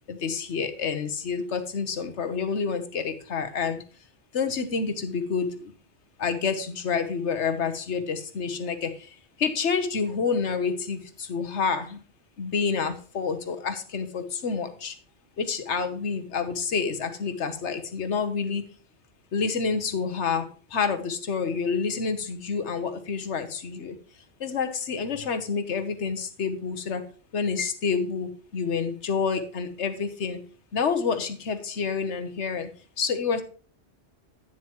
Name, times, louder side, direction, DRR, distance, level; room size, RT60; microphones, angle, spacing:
voice 1, 0.1-3.8 4.3-5.7 6.2-12.0 12.4-15.0 15.4-18.7 19.3-24.0 24.4-27.0 27.3-30.4 30.7-32.7 33.0-33.4, left 5 dB, 75° left, 8 dB, 1.3 m, -28 dB
10.5 x 9.2 x 3.0 m, 0.40 s
omnidirectional pair, 1.2 m